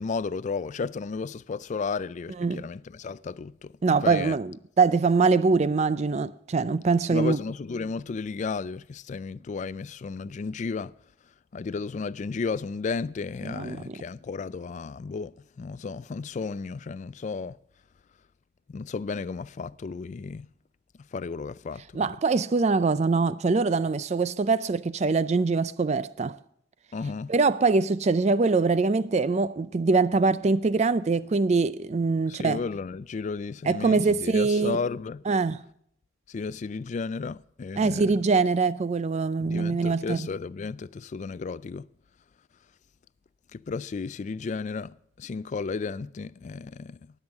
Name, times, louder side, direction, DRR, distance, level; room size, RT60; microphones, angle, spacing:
voice 1, 0.0-3.7 4.0-4.4 7.1-10.9 11.5-17.6 18.7-20.5 21.1-21.8 26.9-27.3 32.3-35.2 36.3-38.2 39.4-41.9 43.5-47.0, left 4 dB, 40° left, 0.3 m, -33 dB
voice 2, 3.8-7.4 13.4-14.0 21.9-26.4 27.3-32.6 33.7-34.8 35.3-35.6 37.8-40.3, right 4 dB, 35° right, 0.4 m, -23 dB
19.5 x 8.0 x 3.5 m
head